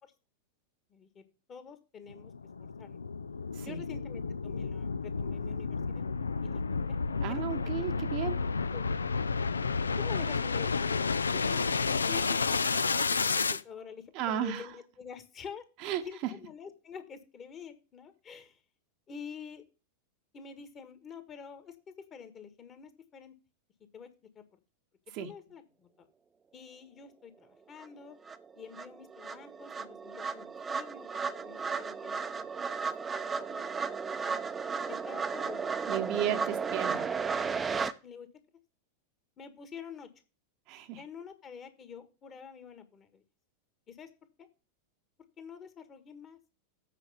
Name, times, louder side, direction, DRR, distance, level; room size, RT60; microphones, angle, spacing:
voice 1, 0.9-1.2 1.5-2.3 2.6-3.0 3.6-7.0 7.3-7.6 8.7-9.1 10.0-11.1 11.3-15.6 16.0-18.6 19.1-19.6 20.3-21.8 22.1-23.3 23.9-24.1 24.3-24.4 25.2-26.1 26.5-28.2 28.5-32.6 33.4-33.7 34.2-34.4 34.9-35.6 36.1-36.4 37.4-38.3 39.4-40.1 41.0-43.2 43.9-44.1 44.4-44.5 45.4-46.4, left 6 dB, 25° left, 1.5 m, -47 dB
sound 1, 2.1-13.6, left 4 dB, 75° left, 0.4 m, -31 dB
voice 2, 7.2-8.5 14.1-14.7 15.8-16.3 25.1-25.3 35.9-37.1 40.7-41.0, right 10 dB, 40° right, 0.9 m, -34 dB
sound 2, 27.8-27.9 28.3-37.9, right 5 dB, 15° right, 0.7 m, -34 dB
8.3 x 4.9 x 6.8 m
figure-of-eight pair, 90°, 0 cm